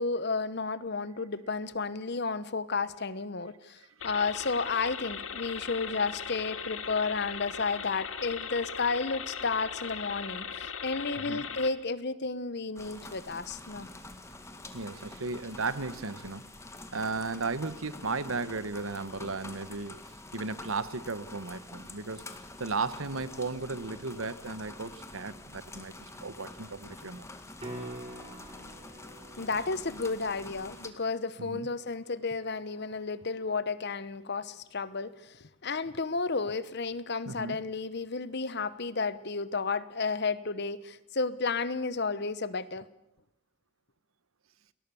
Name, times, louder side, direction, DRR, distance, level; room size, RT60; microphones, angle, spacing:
voice 1, 0.0-13.9 29.4-42.9, left 4 dB, 50° left, 16 dB, 1.1 m, -32 dB
sound 1, 4.0-11.7, left 7 dB, 75° left, 1.9 m, -39 dB
sound 2, 12.8-30.9, left 2 dB, 15° left, 1.9 m, -47 dB
voice 2, 14.7-16.4 16.9-20.0 20.3-22.2 22.6-27.3 31.4-31.7 37.3-37.6, right 3 dB, 75° right, 15 dB, 1.3 m, -35 dB
sound 3, 27.6-33.6 38.3-38.4, right 1 dB, 30° right, 5.7 m, -48 dB
29.5 x 20.0 x 7.1 m, 0.87 s
head